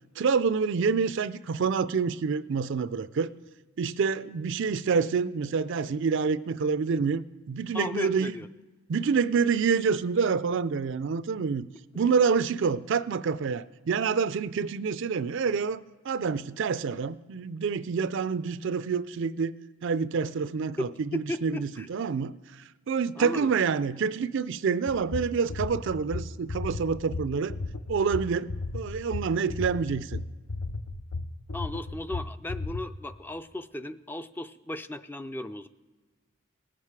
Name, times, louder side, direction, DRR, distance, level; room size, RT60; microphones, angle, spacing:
voice 1, 0.2-3.3 3.8-8.3 8.9-11.7 11.9-19.5 19.8-22.3 22.9-27.5 27.9-30.2, right 5 dB, 60° right, 0.4 m, -27 dB
voice 2, 7.7-8.5 20.8-21.9 23.2-23.5 31.5-35.7, left 1 dB, 10° left, 0.3 m, -36 dB
sound 1, 24.9-32.8, left 3 dB, 70° left, 0.6 m, -34 dB
19.5 x 7.4 x 4.7 m
head